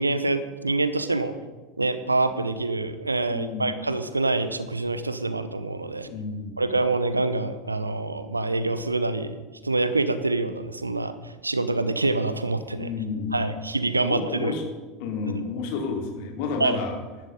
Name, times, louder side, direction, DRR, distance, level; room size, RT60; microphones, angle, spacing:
voice 1, 0.0-1.3 1.8-6.1 6.6-9.3 9.6-12.9 13.3-14.5 15.3-15.5 16.6-16.8, right 2 dB, 85° right, 12 dB, 0.8 m, -26 dB
voice 2, 3.3-3.8 6.0-6.6 12.7-13.4 14.0-14.6 15.0-16.9, left 5 dB, 55° left, 2 dB, 2.8 m, -31 dB
13.5 x 11.5 x 5.3 m, 1.2 s
figure-of-eight pair, 80°, 0 cm